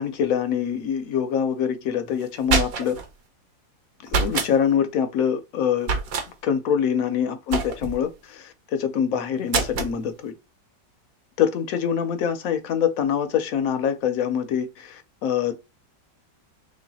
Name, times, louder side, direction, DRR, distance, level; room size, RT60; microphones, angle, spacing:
voice 1, 0.0-3.0 4.1-5.9 6.4-10.3 11.4-15.5, left 8 dB, 65° left, 0.8 m, -24 dB
sound 1, 2.2-3.1 4.1-4.5 5.8-6.3 7.5-8.0 9.5-10.0, right 4 dB, 60° right, 1.1 m, -25 dB
3.3 x 3.1 x 4.0 m
omnidirectional pair, 2.0 m